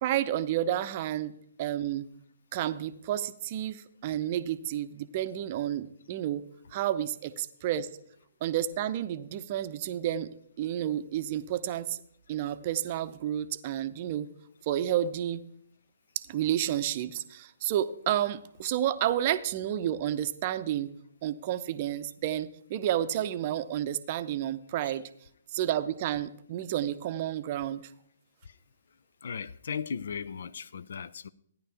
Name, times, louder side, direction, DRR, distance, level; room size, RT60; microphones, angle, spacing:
voice 1, 0.0-1.3 1.6-2.1 2.5-6.4 6.7-7.9 8.4-10.3 10.6-12.0 12.3-14.3 14.7-15.4 16.3-20.9 21.2-25.0 25.5-27.8, right 11 dB, 35° right, 0.6 m, -30 dB
voice 2, 29.2-31.3, left 6 dB, 55° left, 0.4 m, -36 dB
15.0 x 10.0 x 3.4 m
figure-of-eight pair, 125°, 0 cm